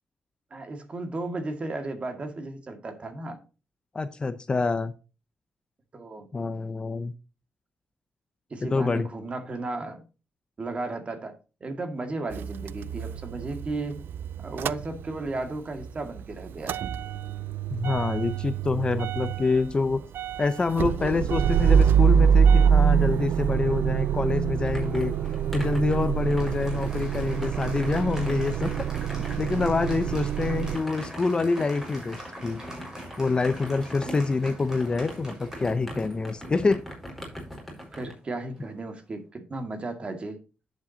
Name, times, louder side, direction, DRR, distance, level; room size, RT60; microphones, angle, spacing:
voice 1, 0.5-3.4 5.9-6.3 8.5-10.0 10.6-14.0 14.4-16.9 37.9-40.4, right 2 dB, 35° right, 7 dB, 2.1 m, -34 dB
voice 2, 3.9-4.9 6.3-7.1 8.6-9.1 17.7-20.0 20.4-25.1 25.5-28.8 29.4-32.6 33.2-36.8, left 3 dB, 25° left, 12 dB, 0.7 m, -26 dB
Motor vehicle (road) / Engine starting / Idling, 12.3-15.5 15.8-30.8, right 8 dB, 80° right, 0.4 m, -25 dB
Applause, 24.5-38.9, equal, 15° right, 4.9 m, -45 dB
sound 1, 24.6-38.1, equal, ahead, 4.3 m, -41 dB
11.0 x 7.5 x 2.8 m, 0.31 s
wide cardioid pair, 145°, 4 cm